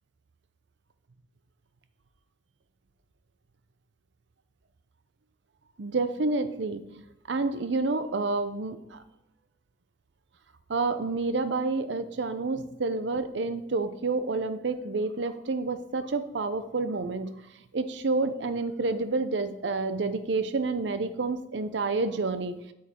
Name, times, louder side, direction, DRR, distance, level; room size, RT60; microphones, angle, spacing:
voice 1, 5.8-7.0 7.3-9.0 10.7-17.4 17.7-22.6, right 3 dB, 70° right, 11 dB, 0.6 m, -29 dB
8.4 x 7.3 x 4.3 m, 0.88 s
head